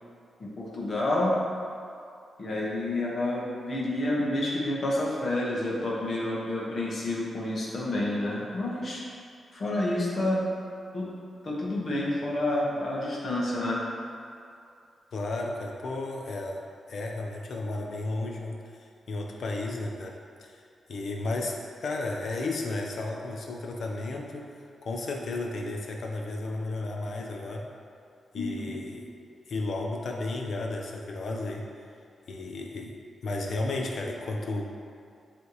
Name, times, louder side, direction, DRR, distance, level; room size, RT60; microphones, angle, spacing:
voice 1, 0.4-1.3 2.4-9.0 9.5-10.4 10.9-11.1 11.4-13.8 28.3-28.7, left 1 dB, 45° left, -6 dB, 1.4 m, -29 dB
voice 2, 15.1-16.6 16.9-20.6 20.9-21.5 21.8-24.5 24.8-27.7 28.3-29.1 29.5-31.7 32.3-34.7, left 2 dB, 60° left, 0 dB, 0.8 m, -33 dB
9.7 x 3.4 x 3.2 m, 2.4 s
wide cardioid pair, 130°, 0 cm